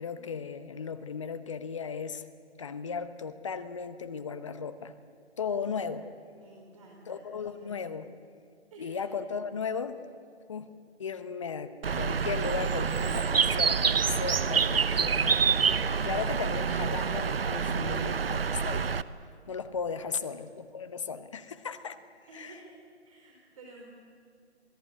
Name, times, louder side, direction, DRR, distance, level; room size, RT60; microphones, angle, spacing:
voice 1, 0.0-2.2 2.6-4.9 5.4-6.1 7.1-8.1 8.8-10.0 10.5-10.7 11.0-15.3 16.0-18.9 19.5-22.0 22.3-22.6, left 6 dB, 25° left, 11 dB, 1.0 m, -36 dB
voice 2, 6.3-7.8 8.7-9.0 19.9-20.2 22.3-22.8 23.0-23.8, right 2 dB, 30° right, -1 dB, 4.0 m, -52 dB
Bird, 11.8-19.0, right 6 dB, 60° right, 1.0 m, -27 dB
26.0 x 18.0 x 9.8 m, 2.4 s
figure-of-eight pair, 160°, 34 cm